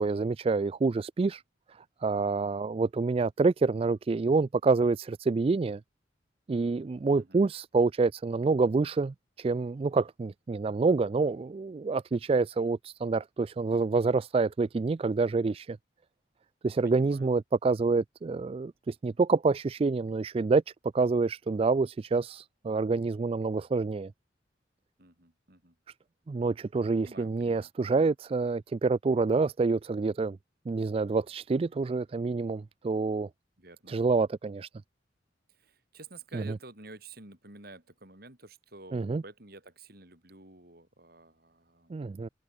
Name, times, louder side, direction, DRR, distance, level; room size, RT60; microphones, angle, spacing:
voice 1, 0.0-1.4 2.0-5.8 6.5-15.8 16.6-20.6 20.9-24.1 26.3-30.4 30.7-33.3 33.9-34.7 36.3-36.4 38.9-39.2 41.9-42.3, right 4 dB, 30° right, 0.3 m, -27 dB
voice 2, 16.8-17.3 25.0-25.8 27.0-28.1 33.6-34.0 35.5-42.0, right 2 dB, 55° right, 5.8 m, -50 dB
open air
head